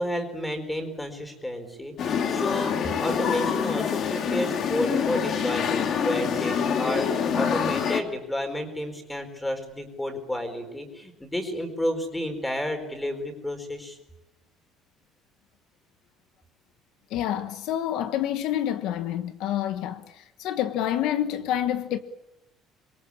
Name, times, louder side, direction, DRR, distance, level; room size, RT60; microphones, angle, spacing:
voice 1, 0.0-14.0, left 1 dB, 5° left, 4.5 m, -31 dB
sound 1, 2.0-8.0, left 7 dB, 45° left, 2.3 m, -26 dB
voice 2, 17.1-22.0, left 11 dB, 70° left, 1.4 m, -28 dB
26.0 x 23.0 x 8.6 m
cardioid pair, 155°, 0 cm